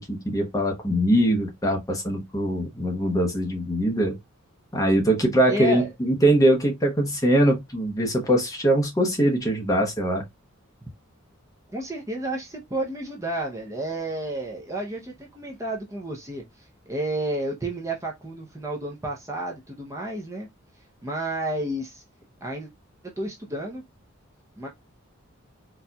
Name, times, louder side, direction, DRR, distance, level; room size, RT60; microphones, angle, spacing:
voice 1, 0.0-4.2 4.7-10.2, right 1 dB, 15° left, 0.8 m, -22 dB
voice 2, 5.5-5.9 11.7-20.5 21.0-22.0 22.4-22.7 23.0-23.8 24.6-24.7, right 1 dB, 15° right, 0.6 m, -31 dB
4.1 x 2.4 x 2.2 m
head